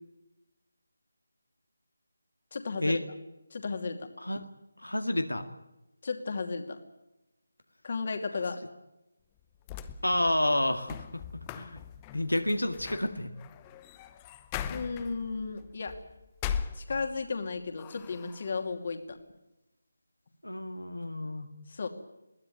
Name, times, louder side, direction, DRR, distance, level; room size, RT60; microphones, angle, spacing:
voice 1, 2.5-3.0 3.5-4.1 6.0-6.8 7.8-8.6 14.7-16.0 16.7-19.2 21.7-21.9, left 4 dB, 40° left, 6 dB, 2.6 m, -34 dB
voice 2, 4.8-5.4 10.0-11.1 11.3-11.8 12.1-13.3 20.4-21.5, left 1 dB, 85° left, 6 dB, 2.1 m, -29 dB
sound 1, 9.4-17.4 17.8-18.6, left 8 dB, 15° left, 0.8 m, -40 dB
22.0 x 17.0 x 9.5 m, 0.95 s
figure-of-eight pair, 155°, 0 cm